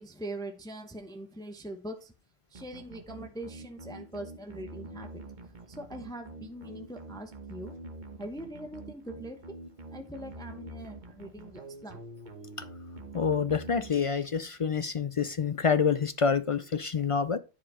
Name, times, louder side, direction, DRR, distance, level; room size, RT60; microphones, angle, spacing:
voice 1, 0.0-2.1 2.5-5.2 5.7-7.7 8.2-9.6 9.9-12.0 13.0-13.1, right 1 dB, 5° left, 0.9 m, -42 dB
sound 1, 2.5-14.4, right 2 dB, 45° right, 1.3 m, -46 dB
voice 2, 13.1-17.4, left 6 dB, 60° left, 0.3 m, -27 dB
10.0 x 5.0 x 4.9 m
omnidirectional pair, 1.2 m